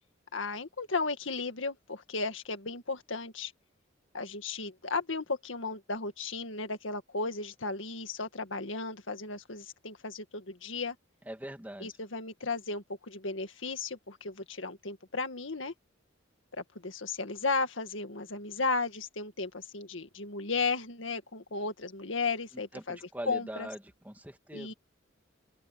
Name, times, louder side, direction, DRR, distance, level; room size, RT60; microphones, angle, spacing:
voice 1, 0.3-3.5 4.1-11.0 11.8-15.7 16.8-23.0 23.3-23.7 24.5-24.7, left 3 dB, 75° left, 2.0 m, -35 dB
voice 2, 11.3-11.9 22.7-23.8 24.0-24.7, right 1 dB, 10° right, 2.5 m, -42 dB
open air
head